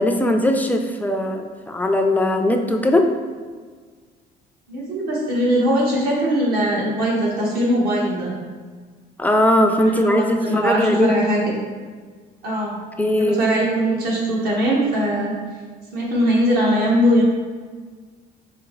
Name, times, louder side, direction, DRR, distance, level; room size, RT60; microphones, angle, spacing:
voice 1, 0.0-3.1 9.2-11.2 13.0-13.4, left 1 dB, 10° left, 4 dB, 0.4 m, -19 dB
voice 2, 4.7-8.3 9.8-11.5 12.4-12.8 13.1-15.3 15.9-17.2, equal, 65° right, -4 dB, 1.4 m, -20 dB
4.9 x 2.9 x 3.1 m, 1.5 s
cardioid pair, 110°, 17 cm